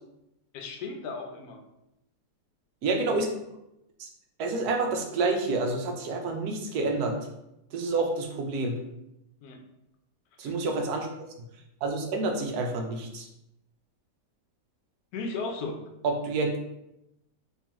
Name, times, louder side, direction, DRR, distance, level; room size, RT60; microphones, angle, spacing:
voice 1, 0.5-1.6 9.4-9.6 10.4-10.5 15.1-15.8, left 3 dB, 70° left, 4 dB, 1.0 m, -35 dB
voice 2, 2.8-3.3 4.0-4.1 4.4-7.2 7.7-8.8 10.4-11.1 11.8-13.3 16.0-16.5, right 3 dB, 70° right, 2 dB, 1.1 m, -28 dB
3.7 x 3.0 x 2.9 m, 0.86 s
omnidirectional pair, 1.8 m